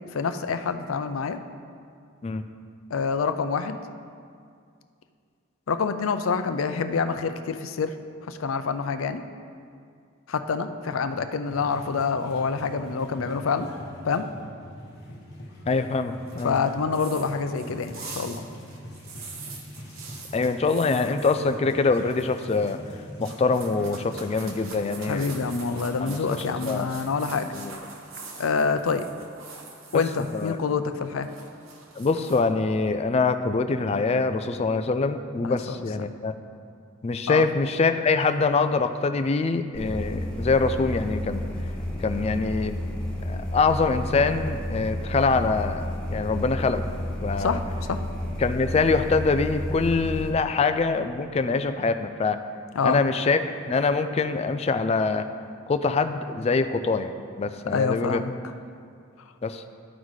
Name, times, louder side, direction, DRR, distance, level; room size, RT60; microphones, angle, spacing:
voice 1, 0.1-1.4 2.9-3.8 5.7-7.9 8.3-9.2 10.3-13.7 14.1-14.2 16.4-18.5 25.1-27.5 28.4-29.0 29.9-31.3 35.4-35.6 37.3-37.5 47.4-47.6 47.9-48.0 52.7-53.0 57.7-58.3, left 5 dB, 90° left, 9 dB, 0.5 m, -26 dB
sound 1, 11.5-26.8, equal, 55° left, 1.3 m, -43 dB
voice 2, 15.7-16.6 20.3-22.8 23.2-25.3 26.0-26.9 27.5-27.8 29.9-30.0 30.3-30.6 32.0-36.3 37.0-41.4 42.0-42.8 43.2-46.8 47.2-47.6 48.4-52.4 52.8-55.2 55.7-57.1 57.4-58.2 59.4-59.6, left 4 dB, 30° left, 9 dB, 0.3 m, -24 dB
sound 2, 16.3-21.5 21.8-22.9 23.2-30.5 30.8-32.4, right 4 dB, 90° right, 1.0 m, -44 dB
sound 3, 39.7-50.3, left 1 dB, 5° left, 1.0 m, -31 dB
12.0 x 4.1 x 4.7 m, 2.2 s
head